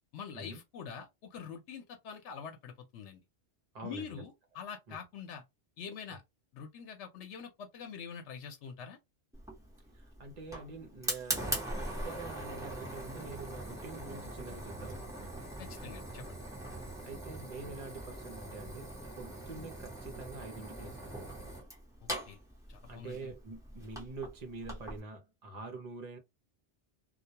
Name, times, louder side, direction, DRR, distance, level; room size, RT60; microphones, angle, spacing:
voice 1, 0.1-3.2 3.8-5.4 5.8-6.2 6.5-9.0 15.6-16.4 22.0-22.4 22.7-23.3, left 6 dB, 80° left, 0.9 m, -45 dB
voice 2, 3.7-4.1 4.9-5.0 9.9-15.5 17.0-21.5 22.9-26.2, right 3 dB, 40° right, 0.7 m, -46 dB
Fire, 9.3-25.0, right 1 dB, 5° right, 0.8 m, -42 dB
2.3 x 2.2 x 2.7 m
omnidirectional pair, 1.2 m